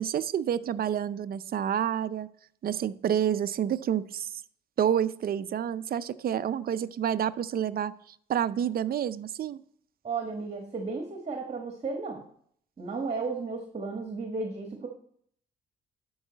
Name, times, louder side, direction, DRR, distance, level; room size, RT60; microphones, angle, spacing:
voice 1, 0.0-2.3 2.6-4.3 4.8-7.9 8.3-9.6, right 9 dB, 50° right, 13 dB, 0.5 m, -28 dB
voice 2, 10.0-12.2 12.8-14.9, right 4 dB, 30° right, 2 dB, 1.3 m, -34 dB
12.0 x 4.8 x 4.0 m, 0.63 s
cardioid pair, 90°, 20 cm